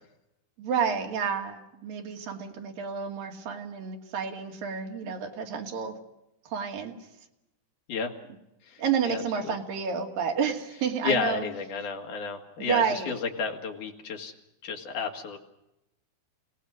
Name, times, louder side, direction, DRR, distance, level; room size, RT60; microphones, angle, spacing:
voice 1, 0.6-6.0 6.5-6.9 8.8-11.5 12.6-13.2, right 6 dB, 55° right, 2 dB, 3.7 m, -30 dB
voice 2, 8.7-9.5 11.0-14.3 14.6-15.4, left 5 dB, 50° left, 2 dB, 3.1 m, -32 dB
30.0 x 18.0 x 6.5 m, 0.88 s
omnidirectional pair, 5.4 m